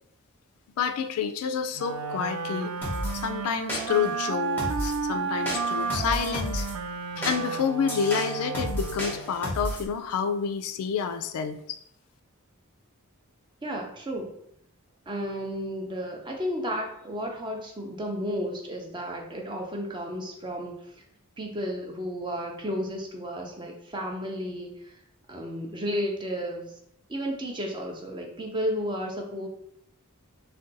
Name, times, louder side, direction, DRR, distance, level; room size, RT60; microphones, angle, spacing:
voice 1, 0.8-2.7 3.1-6.7 7.2-11.8, left 7 dB, 80° left, 10 dB, 0.3 m, -29 dB
Wind instrument woodwind instrument, 1.8-9.3, right 5 dB, 80° right, 0.3 m, -32 dB
sound 1, 2.8-3.2 3.7-4.1 4.6-5.0 5.5-6.7 7.2-9.9, equal, 10° left, 0.8 m, -32 dB
voice 2, 13.6-14.3 15.1-20.8 21.4-24.7 25.3-26.7 27.1-29.5, equal, 20° right, 1 dB, 0.5 m, -32 dB
2.5 x 2.2 x 3.8 m, 0.71 s
head